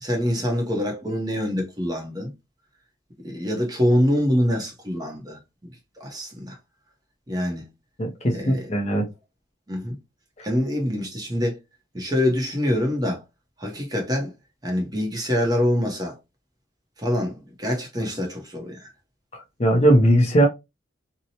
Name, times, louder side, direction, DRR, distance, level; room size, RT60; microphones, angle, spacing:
voice 1, 0.0-2.3 3.2-5.4 6.0-6.6 7.3-7.6 8.3-8.7 9.7-10.0 10.4-11.6 11.9-13.2 13.6-14.3 14.6-16.1 17.0-18.9, left 1 dB, 20° right, 0.6 m, -25 dB
voice 2, 8.0-9.1 19.6-20.5, right 1 dB, 35° left, 0.6 m, -18 dB
2.7 x 2.1 x 2.7 m
head